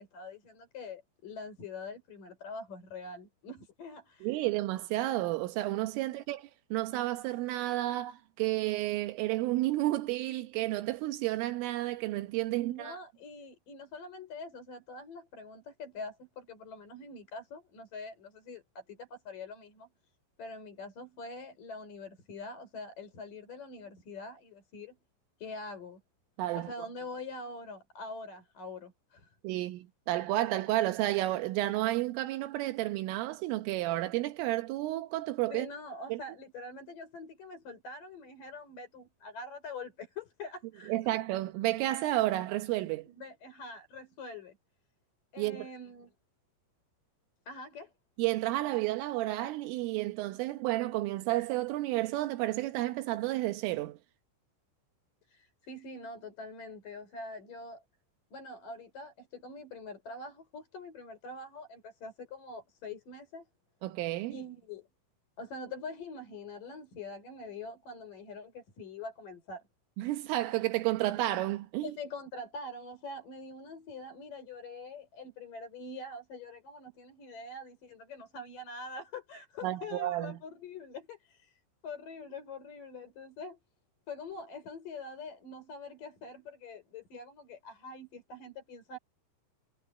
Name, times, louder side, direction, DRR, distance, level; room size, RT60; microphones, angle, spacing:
voice 1, 0.0-4.4 12.6-19.9 20.4-25.0 25.4-26.0 26.6-29.3 35.5-41.2 43.1-44.6 45.3-46.1 47.5-47.9 55.3-57.8 58.3-63.5 64.3-64.9 65.4-69.6 71.8-83.6 84.1-89.0, left 3 dB, 45° left, 6.3 m, -44 dB
voice 2, 4.2-13.0 26.4-26.7 29.4-35.7 36.1-36.2 40.9-43.1 45.4-45.7 48.2-54.0 63.8-64.4 70.0-71.9 79.6-80.4, right 16 dB, 85° right, 3.7 m, -31 dB
omnidirectional pair, 5.7 m